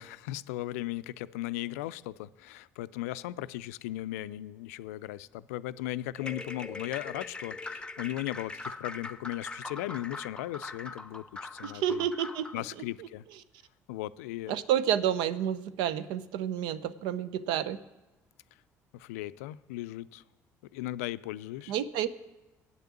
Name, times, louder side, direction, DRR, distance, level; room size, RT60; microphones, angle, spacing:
voice 1, 0.0-12.1 12.5-13.2 13.9-14.6 18.9-20.2 20.7-21.7, left 15 dB, 80° left, 16 dB, 0.4 m, -37 dB
sound 1, 6.2-12.6, left 3 dB, 10° left, 0.9 m, -42 dB
voice 2, 11.6-12.5 14.5-17.8 21.7-22.1, right 10 dB, 70° right, 15 dB, 0.6 m, -29 dB
8.7 x 6.8 x 8.5 m, 1.0 s
hypercardioid pair, 55°, 8 cm